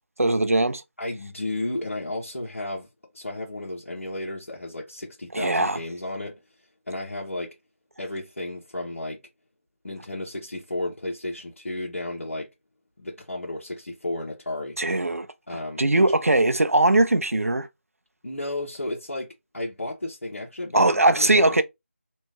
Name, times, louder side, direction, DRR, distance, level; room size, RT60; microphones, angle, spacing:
voice 1, 0.2-0.8 5.3-5.8 14.8-15.3 15.8-17.7 20.7-21.6, right 2 dB, 75° right, 0.5 m, -20 dB
voice 2, 1.0-2.9 3.1-6.4 6.9-7.6 8.0-9.2 9.8-12.5 13.0-14.8 15.5-16.1 18.2-21.6, left 1 dB, 60° left, 1.0 m, -33 dB
3.0 x 2.3 x 3.4 m
figure-of-eight pair, 165°, 8 cm